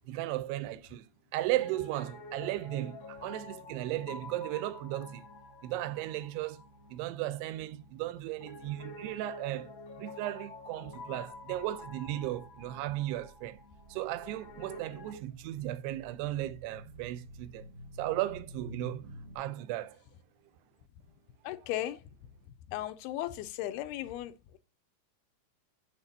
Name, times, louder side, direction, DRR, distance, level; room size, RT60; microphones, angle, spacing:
voice 1, 0.1-1.1 1.3-5.2 5.6-6.6 6.9-9.7 10.0-13.6 13.9-17.7 18.0-19.1 19.4-20.0, right 15 dB, 85° right, 2.7 m, -35 dB
Piano, 1.5-15.2, left 2 dB, 60° left, 1.2 m, -49 dB
sound 1, 11.4-19.4, equal, 45° right, 1.4 m, -52 dB
voice 2, 21.4-22.0 22.7-24.6, left 13 dB, 85° left, 2.4 m, -36 dB
8.1 x 7.2 x 2.7 m
omnidirectional pair, 4.7 m